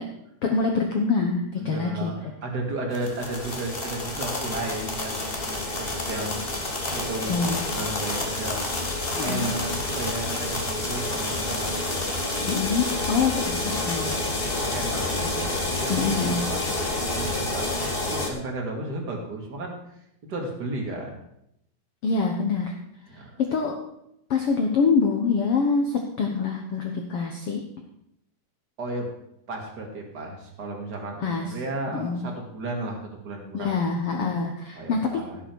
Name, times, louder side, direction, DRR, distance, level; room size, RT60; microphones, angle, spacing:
voice 1, 0.4-2.1 7.3-7.7 9.2-9.5 12.4-14.2 15.9-16.4 22.0-22.7 23.4-23.8 24.3-27.6 31.2-31.5 31.9-32.3 33.5-35.2, left 5 dB, 80° left, 2 dB, 1.3 m, -25 dB
voice 2, 1.5-9.0 9.2-11.7 14.6-15.5 15.8-16.7 17.1-19.7 20.2-21.2 23.1-23.4 28.8-29.1 29.5-33.7 34.7-35.4, right 2 dB, 30° right, 1 dB, 2.3 m, -34 dB
sound 1, 2.9-18.3, left 2 dB, 65° left, 0.5 m, -29 dB
16.5 x 8.0 x 4.7 m, 0.79 s
omnidirectional pair, 4.3 m